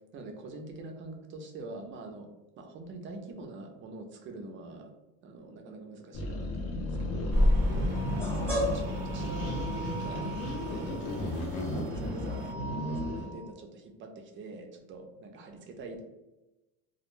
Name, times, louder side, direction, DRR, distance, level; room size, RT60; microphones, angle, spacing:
voice 1, 0.1-2.3 2.6-4.9 5.2-7.4 8.5-11.3 11.7-16.0, right 2 dB, 30° right, 4 dB, 0.4 m, -45 dB
sound 1, 6.1-13.3, left 2 dB, 55° left, 0.6 m, -34 dB
sound 2, 7.3-13.5, equal, 5° left, 0.7 m, -32 dB
sound 3, 7.3-12.5, right 4 dB, 90° right, 0.6 m, -44 dB
2.3 x 2.1 x 3.0 m, 1.0 s
cardioid pair, 140°, 40 cm